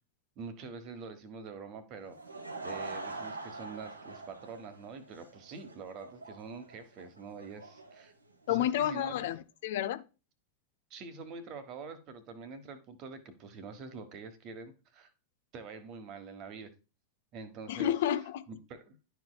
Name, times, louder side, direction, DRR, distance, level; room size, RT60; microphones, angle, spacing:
voice 1, 0.4-2.2 2.6-8.1 8.5-9.4 10.9-15.1 15.5-16.7 17.3-17.9 18.5-19.2, right 4 dB, 40° right, 1.2 m, -45 dB
Laughter / Crowd, 2.0-8.9, right 3 dB, 80° right, 1.2 m, -44 dB
voice 2, 8.5-10.0 17.7-18.4, left 11 dB, 55° left, 0.5 m, -30 dB
11.5 x 4.6 x 2.3 m
figure-of-eight pair, 90°, 0 cm